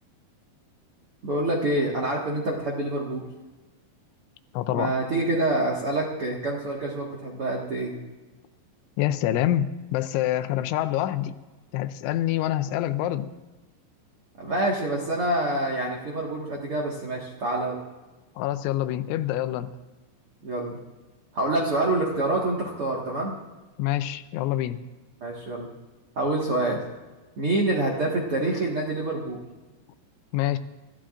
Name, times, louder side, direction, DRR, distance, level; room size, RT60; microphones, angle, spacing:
voice 1, 1.2-3.2 4.7-8.0 14.4-17.8 20.4-20.8 21.3-23.4 25.2-25.7 26.1-26.8 27.4-29.4, right 2 dB, 70° right, -3 dB, 1.3 m, -26 dB
voice 2, 4.5-4.9 9.0-11.3 11.7-13.3 18.4-19.7 23.8-24.8 30.3-30.6, left 13 dB, 90° left, 11 dB, 3.1 m, -26 dB
28.5 x 14.5 x 2.5 m, 1.2 s
omnidirectional pair, 5.3 m